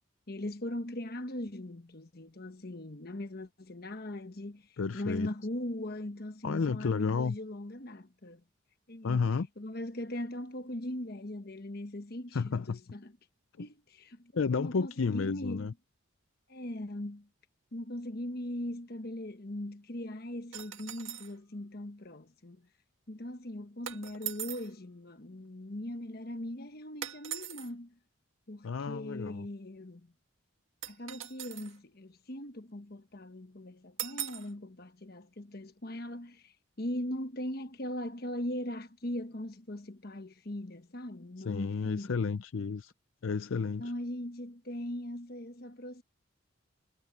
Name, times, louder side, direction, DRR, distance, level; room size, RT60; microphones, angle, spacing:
voice 1, 0.3-4.7 4.9-8.4 8.9-9.3 9.6-13.1 13.6-15.7 16.5-17.3 17.7-22.7 23.1-27.9 28.5-30.1 30.9-42.2 43.8-46.0, left 1 dB, 45° left, 1.2 m, -40 dB
voice 2, 4.8-5.3 6.4-7.4 9.0-9.5 12.3-12.8 13.6-13.7 14.3-15.7 28.6-29.5 41.4-42.9 43.2-43.9, left 5 dB, 70° left, 0.5 m, -31 dB
sound 1, 20.5-21.3 23.9-24.7 27.0-27.7 30.8-31.8 34.0-34.5, right 11 dB, 70° right, 1.6 m, -40 dB
head